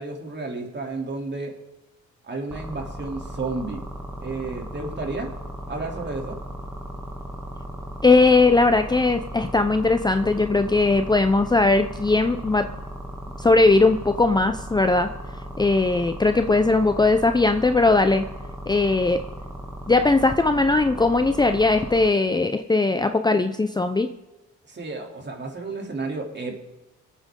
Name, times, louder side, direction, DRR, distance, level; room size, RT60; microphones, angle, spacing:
voice 1, 0.0-1.5 2.2-3.9 4.2-5.3 5.7-6.4 24.7-26.5, right 3 dB, 35° right, 1 dB, 3.3 m, -32 dB
sound 1, 2.5-22.1, equal, 10° right, 2.5 m, -36 dB
voice 2, 8.0-12.7 13.4-15.1 15.6-18.3 18.7-19.2 19.9-24.1, left 3 dB, 15° left, 8 dB, 0.7 m, -19 dB
25.0 x 9.1 x 3.8 m, 1.0 s
cardioid pair, 90°, 30 cm